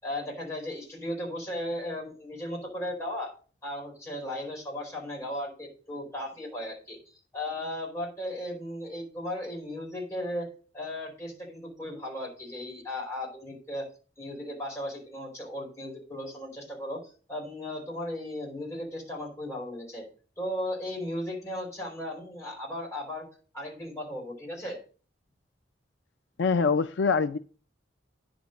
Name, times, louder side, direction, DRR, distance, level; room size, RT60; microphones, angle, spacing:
voice 1, 0.0-3.3 3.6-10.5 10.7-13.9 14.2-20.0 20.4-23.2 23.5-24.8, left 1 dB, 15° left, 4.7 m, -36 dB
voice 2, 26.4-27.4, left 5 dB, 75° left, 0.5 m, -24 dB
10.0 x 5.3 x 6.5 m
head